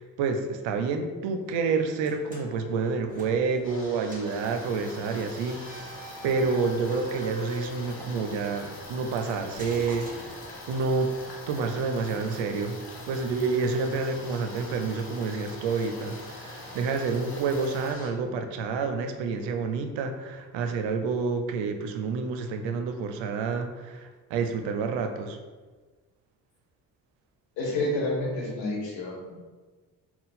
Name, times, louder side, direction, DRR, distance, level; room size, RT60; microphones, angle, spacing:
voice 1, 0.0-6.0 6.2-10.1 10.7-11.1 11.5-12.8 13.1-25.4, right 4 dB, 85° right, 6 dB, 0.5 m, -29 dB
sound 1, 2.0-3.8 4.1-4.4 5.4-8.6 9.5-10.9, equal, 20° right, 1.3 m, -42 dB
sound 2, 3.6-18.1, left 2 dB, 30° left, 0.9 m, -45 dB
sound 3, 4.1-17.9, left 2 dB, 65° left, 1.0 m, -46 dB
voice 2, 27.6-29.4, left 2 dB, 85° left, -3 dB, 1.2 m, -29 dB
3.8 x 2.3 x 4.1 m, 1.3 s
supercardioid pair, 55°, 43 cm